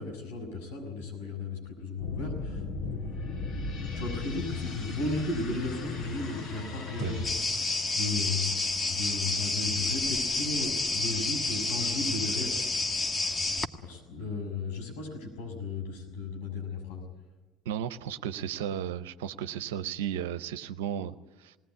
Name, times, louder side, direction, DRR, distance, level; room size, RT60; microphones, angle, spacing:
voice 1, 0.0-2.9 3.9-7.4 7.9-8.5 8.9-12.8 13.8-17.0, left 3 dB, 85° left, 1 dB, 6.7 m, -35 dB
sound 1, 2.0-7.3, left 3 dB, 55° left, 5.2 m, -36 dB
sound 2, 7.2-13.7, left 3 dB, 25° left, 1.5 m, -29 dB
voice 2, 17.7-21.6, right 9 dB, 90° right, 11 dB, 0.6 m, -34 dB
20.0 x 18.0 x 9.6 m, 1.2 s
hypercardioid pair, 75°, 0 cm